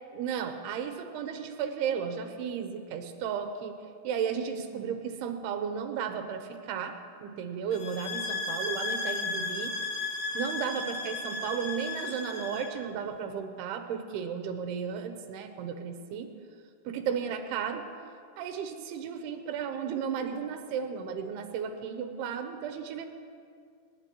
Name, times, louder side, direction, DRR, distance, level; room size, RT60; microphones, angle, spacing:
voice 1, 0.1-3.8 4.0-6.9 7.2-9.7 10.3-16.3 16.9-17.9 18.4-23.1, right 7 dB, 90° right, 6 dB, 2.9 m, -34 dB
sound 1, 7.7-12.8, left 3 dB, 70° left, 3.2 m, -34 dB
28.5 x 11.5 x 3.0 m, 2.2 s
omnidirectional pair, 4.5 m